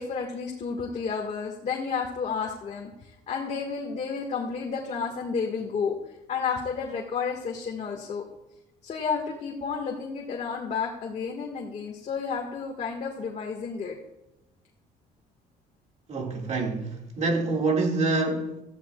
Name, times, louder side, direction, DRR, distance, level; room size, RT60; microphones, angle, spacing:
voice 1, 0.0-6.0 6.3-8.2 8.8-13.9, left 5 dB, 45° left, 1.6 m, -31 dB
voice 2, 16.1-18.6, right 3 dB, 40° right, 2.0 m, -26 dB
17.0 x 14.0 x 2.3 m
cardioid pair, 110°, 17 cm